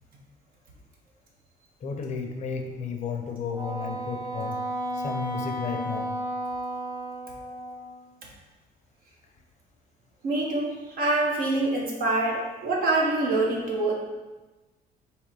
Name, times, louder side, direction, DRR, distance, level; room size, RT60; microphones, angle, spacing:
voice 1, 1.8-4.6 4.9-6.2, left 5 dB, 45° left, 3 dB, 0.6 m, -33 dB
Wind instrument woodwind instrument, 3.5-8.0, right 1 dB, 20° right, 0.7 m, -33 dB
voice 2, 10.2-13.9, right 2 dB, 60° right, -2 dB, 1.2 m, -25 dB
3.7 x 3.0 x 4.7 m, 1.2 s
cardioid pair, 110°, 17 cm